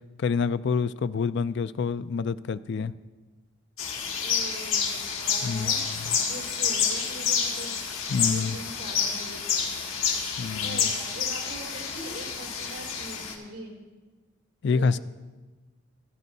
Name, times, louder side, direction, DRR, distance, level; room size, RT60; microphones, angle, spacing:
voice 1, 0.2-2.9 5.4-5.8 8.1-8.6 10.4-10.9 14.6-15.0, left 5 dB, 55° left, 15 dB, 0.3 m, -27 dB
sound 1, 3.8-13.3, left 6 dB, 85° left, 1.8 m, -29 dB
voice 2, 4.2-7.9 8.2-9.6 10.5-13.7 14.6-15.0, right 1 dB, 60° right, -4 dB, 4.3 m, -42 dB
16.5 x 12.0 x 2.7 m, 1.3 s
head